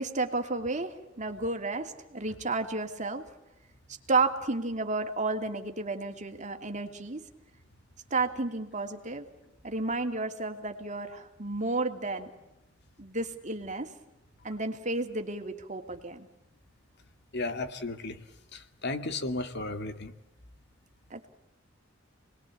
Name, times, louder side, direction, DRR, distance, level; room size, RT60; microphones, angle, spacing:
voice 1, 0.0-3.3 4.1-7.2 8.1-9.3 9.6-12.3 13.0-13.9 14.4-16.3 21.1-21.3, right 3 dB, 40° right, 5 dB, 2.8 m, -32 dB
voice 2, 17.3-18.2 18.5-20.1, left 2 dB, 60° left, 8 dB, 2.3 m, -34 dB
29.5 x 21.5 x 8.6 m, 0.94 s
head